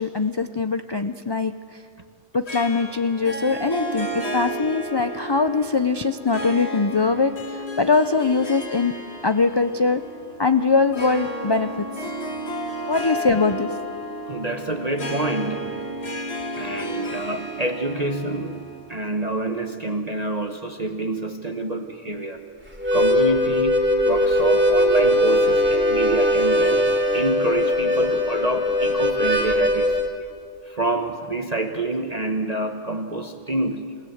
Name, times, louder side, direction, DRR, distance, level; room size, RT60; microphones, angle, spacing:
voice 1, 0.0-1.8 2.3-8.9 9.2-10.0 10.4-11.9 12.9-13.7, left 4 dB, 40° left, 10 dB, 0.3 m, -22 dB
Harp, 2.5-19.2, equal, 60° left, 2.2 m, -32 dB
voice 2, 14.3-16.0 16.5-22.4 22.9-30.3 30.6-34.0, right 2 dB, 35° right, 5 dB, 1.1 m, -27 dB
Harmonica, 22.7-30.1, left 1 dB, 10° right, 2.5 m, -20 dB
28.5 x 16.5 x 7.9 m, 2.5 s
omnidirectional pair, 1.3 m